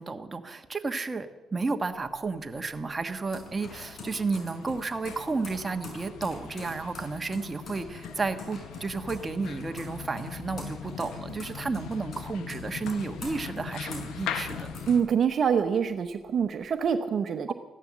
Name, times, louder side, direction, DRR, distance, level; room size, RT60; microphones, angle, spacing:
voice 1, 0.0-14.7 17.5-17.6, right 4 dB, 25° right, 6 dB, 1.3 m, -32 dB
sound 1, 1.9-15.7 16.1-16.9, left 3 dB, 50° left, 5.6 m, -46 dB
sound 2, 3.6-15.0, left 8 dB, 85° left, 1.1 m, -41 dB
voice 2, 14.9-17.5, right 7 dB, 55° right, 8 dB, 0.9 m, -25 dB
15.5 x 12.0 x 7.4 m, 1.2 s
cardioid pair, 90°, 0 cm